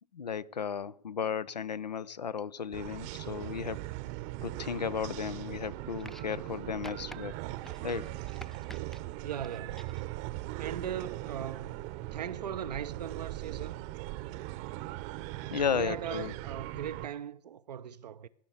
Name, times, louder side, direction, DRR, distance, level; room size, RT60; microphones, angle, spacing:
voice 1, 0.1-3.9 4.4-7.4 7.8-8.2 15.5-16.3, left 7 dB, 85° left, 0.5 m, -34 dB
sound 1, 2.7-17.1, right 17 dB, 45° right, 0.8 m, -40 dB
sound 2, 6.0-6.5 6.8-7.2 7.6-9.0 9.4-10.1 11.1-11.2, left 1 dB, ahead, 0.4 m, -50 dB
voice 2, 9.2-9.8 10.5-11.7 12.1-13.8 15.7-18.3, right 9 dB, 75° right, 0.5 m, -39 dB
17.5 x 5.8 x 8.3 m
figure-of-eight pair, 95°, 21 cm